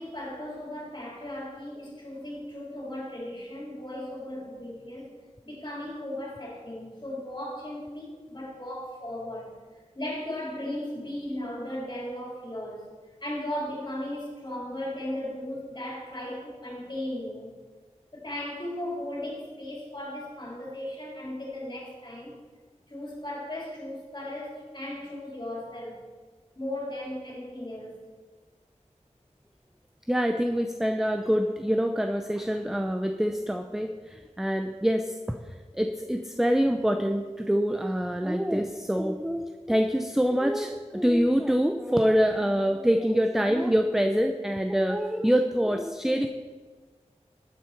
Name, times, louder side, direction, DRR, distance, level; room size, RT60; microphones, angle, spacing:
voice 1, 0.0-5.1 5.4-9.5 9.9-12.9 13.2-17.6 18.1-22.3 22.9-26.1 26.6-28.0, left 1 dB, 35° left, -3 dB, 4.3 m, -36 dB
voice 2, 30.1-46.3, equal, 5° right, 5 dB, 0.6 m, -25 dB
13.0 x 9.6 x 4.6 m, 1.4 s
wide cardioid pair, 65°, 13 cm